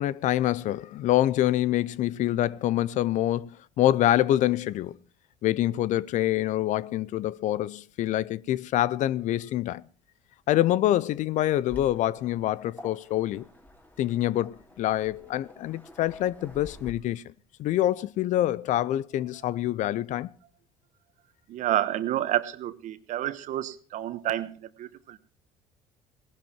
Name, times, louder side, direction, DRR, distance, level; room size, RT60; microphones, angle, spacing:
voice 1, 0.0-3.5 3.8-5.0 5.4-9.8 10.5-13.5 14.0-17.2 17.6-20.3, left 13 dB, 60° left, 0.6 m, -26 dB
Waves surf, 11.7-16.9, left 1 dB, 10° left, 3.3 m, -49 dB
voice 2, 21.5-25.2, right 13 dB, 60° right, 1.3 m, -29 dB
18.0 x 11.5 x 4.5 m
hypercardioid pair, 70°, 14 cm